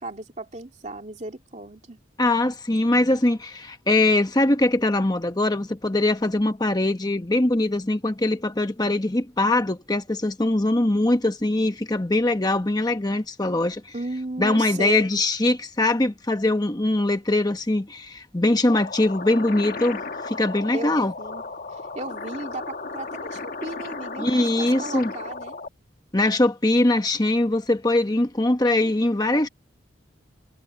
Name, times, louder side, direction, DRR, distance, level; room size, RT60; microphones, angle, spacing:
voice 1, 0.0-2.0 13.9-15.1 20.7-21.4 21.7-25.6, right 2 dB, 40° right, 2.7 m, -35 dB
voice 2, 2.2-13.9 14.4-21.1 24.2-25.1 26.1-29.5, left 2 dB, 20° left, 1.0 m, -22 dB
sound 1, 18.7-25.7, left 3 dB, 50° left, 1.4 m, -35 dB
head